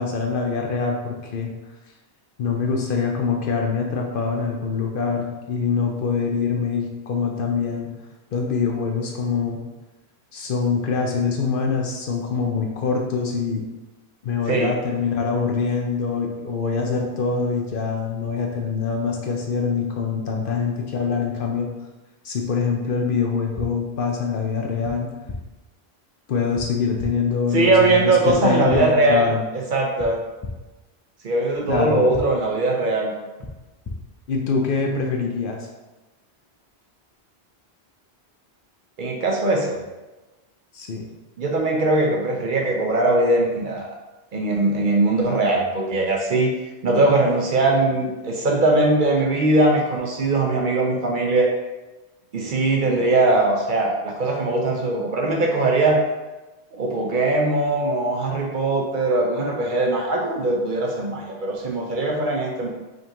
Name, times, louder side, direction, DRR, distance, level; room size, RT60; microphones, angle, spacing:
voice 1, 0.0-1.5 2.4-7.9 8.3-9.6 10.3-13.6 14.2-21.7 22.2-25.1 26.3-29.4 31.7-32.0 34.3-35.7 40.7-41.1, left 5 dB, 60° left, 1 dB, 0.7 m, -24 dB
sound 1, 23.6-23.7 24.8-24.9 25.3-25.4 26.6-26.7 27.0-27.1 28.3-28.4 28.7-28.8 30.0-30.1 30.4-30.5 31.7-31.8 32.1-32.2 33.4-33.5 33.8-34.0, left 3 dB, 40° left, 0.3 m, -32 dB
voice 2, 27.5-29.2 29.7-30.2 31.2-33.1 39.0-39.8 41.4-43.9 44.3-46.5 46.8-51.5 52.3-56.0 56.7-62.7, right 2 dB, 55° right, 0 dB, 0.7 m, -20 dB
5.1 x 2.5 x 2.9 m, 1.1 s
omnidirectional pair, 1.1 m